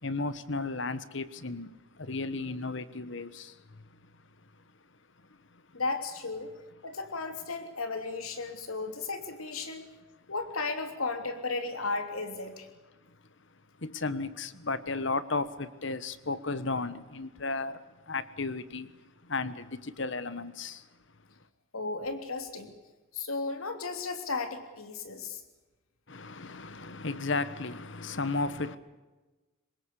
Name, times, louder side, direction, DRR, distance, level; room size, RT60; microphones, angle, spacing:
voice 1, 0.0-4.6 4.9-5.8 13.0-20.9 26.1-28.8, left 3 dB, 60° left, 1.3 m, -35 dB
voice 2, 5.7-6.5 6.8-9.9 10.3-12.7 21.7-22.7 23.1-25.4, left 3 dB, 85° left, 3.1 m, -34 dB
24.0 x 20.5 x 8.4 m
head